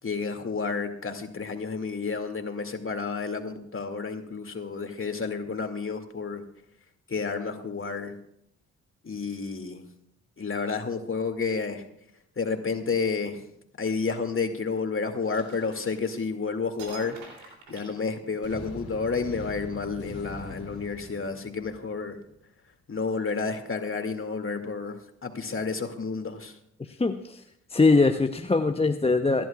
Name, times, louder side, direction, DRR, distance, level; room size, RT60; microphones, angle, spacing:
voice 1, 0.0-6.4 7.1-8.1 9.0-9.8 10.4-11.8 12.4-13.5 13.8-22.2 22.9-26.6, left 4 dB, 35° left, 5 dB, 2.4 m, -31 dB
sound 1, 15.2-16.4 16.8-18.7, right 3 dB, 80° right, 3.2 m, -46 dB
sound 2, 18.4-22.4, left 2 dB, 75° left, 2.1 m, -43 dB
voice 2, 26.8-27.4 27.7-29.5, left 3 dB, 15° left, 8 dB, 0.8 m, -22 dB
27.5 x 11.0 x 2.4 m, 0.74 s
hypercardioid pair, 40°, 38 cm